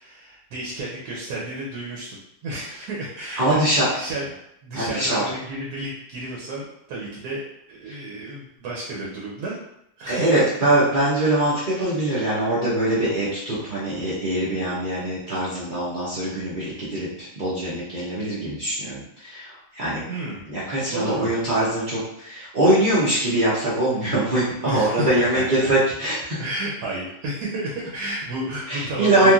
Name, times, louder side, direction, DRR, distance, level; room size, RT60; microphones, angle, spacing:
voice 1, 0.0-4.2 4.6-7.4 7.7-9.6 10.0-10.4 20.1-20.5 20.9-21.3 24.6-25.7 26.4-29.3, right 2 dB, 75° right, -4 dB, 1.2 m, -32 dB
voice 2, 3.4-3.9 4.7-5.2 7.9-8.0 10.1-20.0 20.5-26.4 28.7-29.3, right 1 dB, 55° right, -9 dB, 0.5 m, -22 dB
3.1 x 2.5 x 2.3 m, 0.76 s
omnidirectional pair, 1.8 m